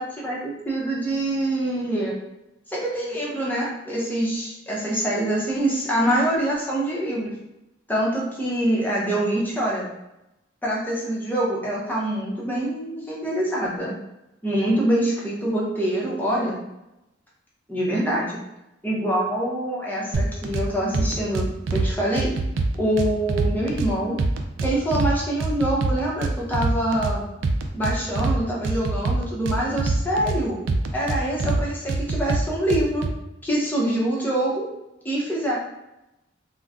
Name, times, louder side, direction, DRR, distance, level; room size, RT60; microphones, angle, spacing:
voice 1, 0.0-2.1 2.7-7.3 7.9-9.9 10.6-13.9 14.4-16.6 17.7-18.3 18.8-22.3 22.8-24.1 24.6-27.3 27.7-30.6 30.9-33.1 33.4-34.7 35.0-35.6, right 1 dB, 10° left, -5 dB, 0.7 m, -25 dB
sound 1, 20.1-20.6 20.9-21.9 22.2-23.9 24.2-25.1 25.4-27.1 27.4-28.4 28.6-30.4 30.7-31.6 31.9-33.1, right 3 dB, 80° right, 0.4 m, -24 dB
2.4 x 2.2 x 3.4 m, 0.90 s
head